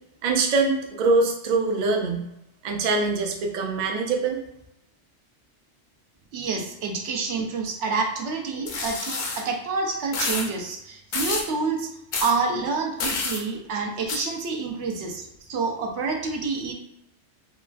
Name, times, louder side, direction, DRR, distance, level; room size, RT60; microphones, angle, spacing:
voice 1, 0.2-2.3 2.6-4.4, right 3 dB, 60° right, 1 dB, 0.5 m, -23 dB
voice 2, 6.3-11.9 12.2-16.7, right 4 dB, 90° right, 2 dB, 0.9 m, -28 dB
sound 1, 8.7-9.4 10.1-10.5 11.1-11.5 12.1-12.3 13.0-13.4 14.1-14.2, left 3 dB, 55° left, 0.6 m, -28 dB
3.0 x 2.3 x 2.4 m, 0.85 s
omnidirectional pair, 1.2 m